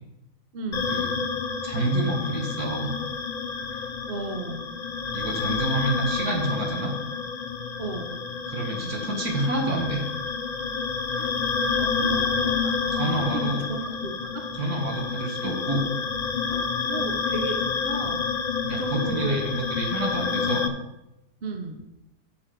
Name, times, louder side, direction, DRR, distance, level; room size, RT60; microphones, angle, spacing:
voice 1, 0.5-1.0 3.7-4.7 7.8-8.3 11.2-11.4 11.7-14.5 16.5-18.3 18.7-19.5 21.4-21.8, right 3 dB, 45° right, 4 dB, 1.1 m, -35 dB
sound 1, 0.7-20.7, left 5 dB, 85° left, 0.3 m, -29 dB
voice 2, 1.6-2.9 5.1-6.9 8.5-10.0 12.9-13.6 14.6-15.9 18.7-20.7, right 2 dB, 70° right, 1 dB, 2.2 m, -28 dB
8.8 x 6.9 x 5.3 m, 0.93 s
omnidirectional pair, 1.6 m